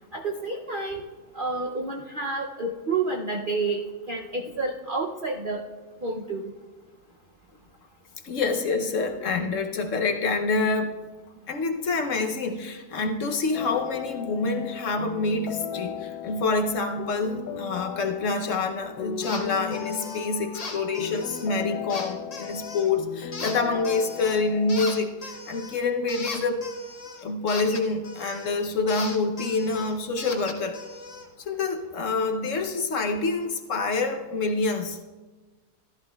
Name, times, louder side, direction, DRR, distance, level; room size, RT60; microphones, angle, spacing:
voice 1, 0.1-1.0 1.3-3.8 4.1-5.6 6.0-6.5, right 3 dB, 55° right, 0 dB, 0.6 m, -29 dB
voice 2, 8.2-11.0 11.5-26.6 27.2-30.8 31.4-35.0, left 3 dB, 60° left, 5 dB, 1.1 m, -27 dB
sound 1, 13.5-25.2, left 9 dB, 80° left, 1.1 m, -37 dB
sound 2, 19.2-19.4 19.7-20.2 20.5-21.5 21.9-22.9 23.3-24.4 24.7-28.5 28.9-31.3, left 3 dB, 35° left, 0.7 m, -38 dB
14.5 x 13.0 x 2.3 m, 1.3 s
omnidirectional pair, 1.6 m